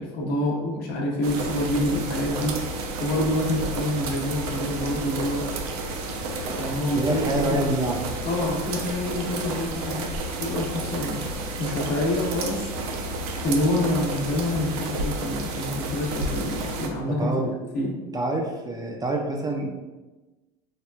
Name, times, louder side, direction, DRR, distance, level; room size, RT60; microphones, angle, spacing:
voice 1, 0.0-2.6 3.0-5.5 6.1-7.6 8.2-10.1 10.4-11.3 11.6-12.7 13.4-17.3 17.7-18.0, left 1 dB, 55° left, -1 dB, 0.9 m, -27 dB
sound 1, 1.2-16.9, right 2 dB, 75° right, 0.6 m, -31 dB
voice 2, 6.9-8.0 17.1-17.5 18.1-19.7, right 2 dB, 20° right, 1 dB, 0.4 m, -26 dB
4.4 x 2.3 x 2.2 m, 1.2 s
hypercardioid pair, 95°, 20 cm